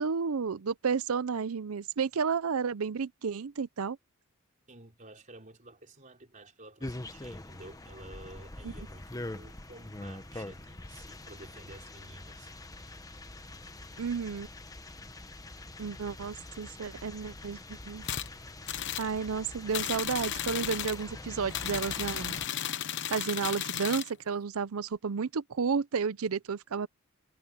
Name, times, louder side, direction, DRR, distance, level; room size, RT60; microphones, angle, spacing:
voice 1, 0.0-4.0 8.6-8.7 14.0-14.5 15.8-18.0 19.0-22.4 23.1-26.9, right 5 dB, 75° right, 0.6 m, -32 dB
voice 2, 4.7-12.5 12.9-13.0, right 2 dB, 35° right, 4.1 m, -51 dB
sound 1, 6.8-22.5, left 2 dB, 15° left, 1.0 m, -44 dB
sound 2, 18.0-18.3 18.7-19.1 19.7-21.0 21.5-24.1, left 10 dB, 55° left, 1.0 m, -34 dB
head